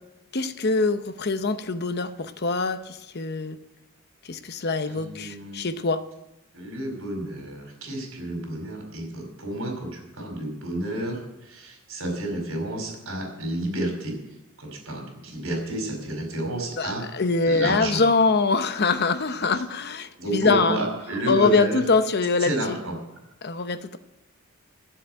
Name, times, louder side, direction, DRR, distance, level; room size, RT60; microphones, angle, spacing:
voice 1, 0.3-3.6 4.3-6.0 16.8-20.8 21.3-22.8 23.4-24.0, left 4 dB, 50° left, 9 dB, 0.8 m, -24 dB
voice 2, 4.9-5.7 6.5-14.2 14.6-17.0 17.4-18.0 20.2-21.8 22.4-22.9, right 1 dB, 65° right, 2 dB, 5.2 m, -30 dB
13.0 x 8.0 x 9.1 m, 0.93 s
head